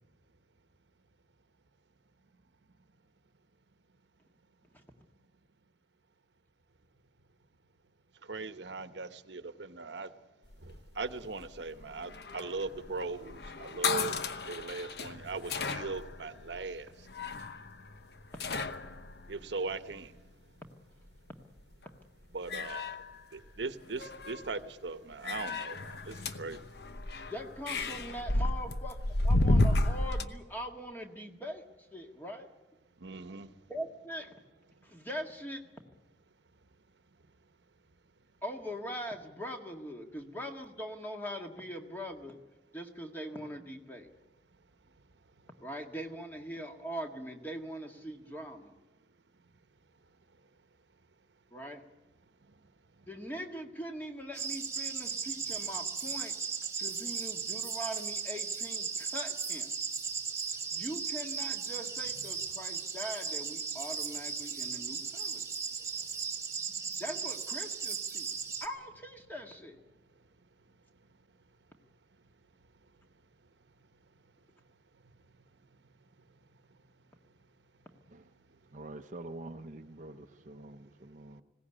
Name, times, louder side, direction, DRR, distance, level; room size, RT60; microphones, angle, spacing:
voice 1, 8.2-10.1 10.6-14.2 14.5-17.1 19.3-20.1 22.3-23.0 23.3-26.6 33.0-33.5, right 3 dB, 80° right, 11 dB, 0.9 m, -39 dB
sound 1, 10.5-20.3 21.6-22.0 22.3-23.6 23.9-24.6 25.2-30.3, left 2 dB, 65° left, 0.9 m, -33 dB
voice 2, 27.3-32.5 33.7-34.3 34.8-35.6 38.4-42.4 42.7-44.1 45.6-48.8 51.5-51.8 53.1-56.4 56.8-59.7 60.7-65.5 67.0-68.3 68.6-69.8, equal, 10° left, 3 dB, 1.7 m, -42 dB
sound 2, 54.3-68.7, right 6 dB, 15° right, 1.1 m, -36 dB
voice 3, 78.7-81.4, right 2 dB, 45° right, 7 dB, 0.7 m, -46 dB
20.5 x 17.5 x 9.9 m, 1.1 s
head